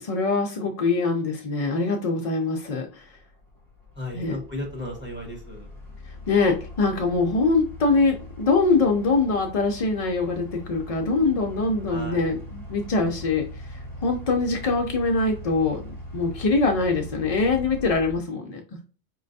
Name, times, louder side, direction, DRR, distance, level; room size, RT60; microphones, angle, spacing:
voice 1, 0.0-3.1 4.1-4.4 6.0-18.6, left 3 dB, 50° left, 2 dB, 0.4 m, -23 dB
sound 1, 3.1-18.2, left 1 dB, 20° left, 1.1 m, -41 dB
voice 2, 3.9-5.7 11.9-12.3, left 1 dB, 10° right, -2 dB, 1.2 m, -35 dB
4.4 x 3.2 x 2.6 m, 0.36 s
omnidirectional pair, 1.1 m